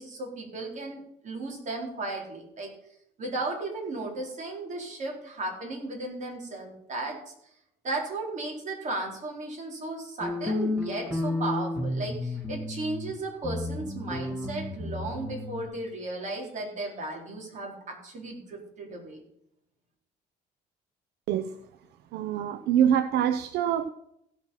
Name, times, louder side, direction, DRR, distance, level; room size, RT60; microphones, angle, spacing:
voice 1, 0.0-2.7 3.2-7.2 7.8-19.2, right 2 dB, 45° right, 0 dB, 4.2 m, -35 dB
sound 1, 10.2-13.1 13.4-15.6, left 2 dB, 10° right, 2.8 m, -32 dB
voice 2, 22.1-23.9, right 9 dB, 75° right, 11 dB, 0.7 m, -25 dB
16.0 x 6.2 x 5.7 m, 0.76 s
cardioid pair, 110°, 17 cm